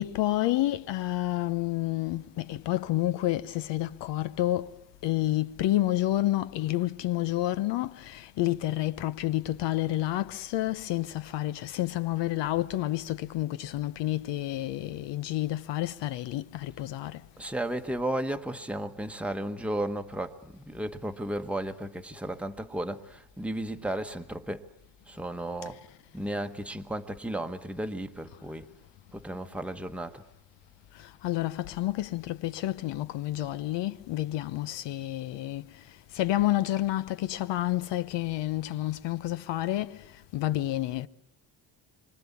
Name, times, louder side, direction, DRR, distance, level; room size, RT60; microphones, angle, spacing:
voice 1, 0.0-17.2 30.9-41.1, left 15 dB, 70° left, 1.0 m, -29 dB
voice 2, 17.4-24.7 25.1-25.8 26.1-28.7 29.1-30.2, right 1 dB, 5° right, 1.1 m, -34 dB
27.5 x 25.0 x 8.5 m
cardioid pair, 145°, 44 cm